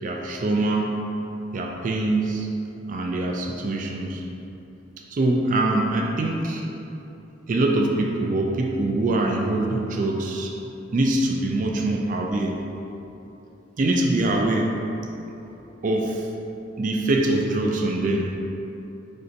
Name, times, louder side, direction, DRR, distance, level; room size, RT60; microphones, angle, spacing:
voice 1, 0.0-1.0 1.5-2.5 2.9-4.2 5.1-6.7 7.5-10.5 10.9-12.6 13.8-14.7 15.8-16.3 16.8-18.3, right 2 dB, 45° right, 1 dB, 0.3 m, -23 dB
5.0 x 3.3 x 2.6 m, 2.9 s
head